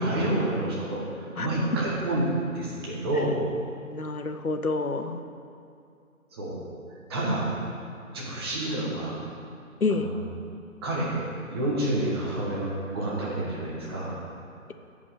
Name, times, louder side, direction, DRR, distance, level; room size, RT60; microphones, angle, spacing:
voice 1, 0.0-2.2 2.5-3.4 6.3-6.6 7.1-7.5 8.1-9.2 9.9-10.2 10.8-11.1 11.5-14.1, right 1 dB, 15° right, -5 dB, 1.4 m, -28 dB
voice 2, 3.9-5.2 9.8-10.1, left 3 dB, 80° left, 8 dB, 0.9 m, -28 dB
15.0 x 5.3 x 5.0 m, 2.5 s
figure-of-eight pair, 145°, 43 cm